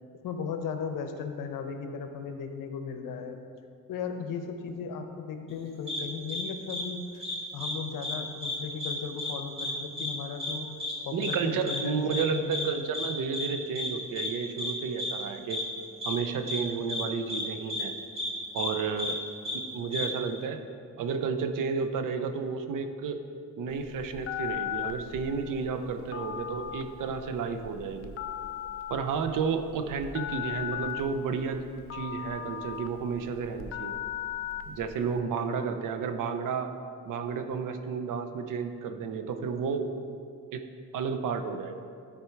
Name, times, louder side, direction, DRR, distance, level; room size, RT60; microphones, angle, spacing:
voice 1, 0.2-3.4 3.9-7.2 7.5-10.7 11.0-12.7, left 6 dB, 80° left, 6 dB, 0.9 m, -36 dB
sound 1, 5.9-6.0 6.3-6.4 6.7-6.8 7.2-7.7 8.0-8.1 8.4-8.9 9.2-9.3 9.6-9.7 10.0-10.1 10.4-10.5 10.8-10.9 11.2-11.3 11.7-11.8 12.1-12.2 12.5-12.6 12.9-13.1 13.3-13.5 13.7-13.9 14.1-14.3 14.6-14.7 15.0-15.1 15.5-15.6 16.0-16.1 16.5-16.6 16.9-17.0 17.3-17.4 17.7-17.8 18.2-18.3 18.6-18.7 19.0-19.1 19.4-19.6 19.9-20.0, left 2 dB, 20° right, 2.0 m, -32 dB
voice 2, 11.1-15.6 16.0-17.9 18.5-19.2 19.5-20.6 21.0-23.2 23.6-28.1 28.9-31.6 31.9-34.0 34.7-36.7 37.0-39.9 40.5-40.6 40.9-41.8, right 5 dB, 70° right, 8 dB, 0.7 m, -32 dB
Telephone, 23.7-35.1, left 10 dB, 45° left, 0.5 m, -37 dB
12.5 x 4.5 x 4.6 m, 2.3 s
cardioid pair, 130°, 32 cm